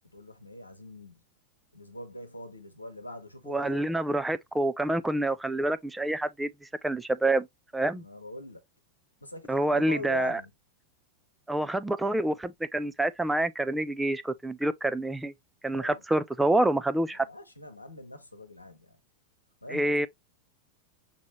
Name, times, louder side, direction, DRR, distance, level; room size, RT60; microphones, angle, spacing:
voice 1, 0.1-1.2 1.7-3.9 7.9-8.6 9.2-10.5 15.7-16.0 17.1-19.0 19.6-20.1, left 1 dB, 85° left, 1.0 m, -43 dB
voice 2, 3.5-6.5 6.8-7.5 7.7-8.0 9.5-10.4 11.5-15.3 15.6-17.3 19.7-20.1, right 1 dB, 5° right, 0.4 m, -27 dB
5.4 x 3.0 x 3.0 m
figure-of-eight pair, 90°, 0 cm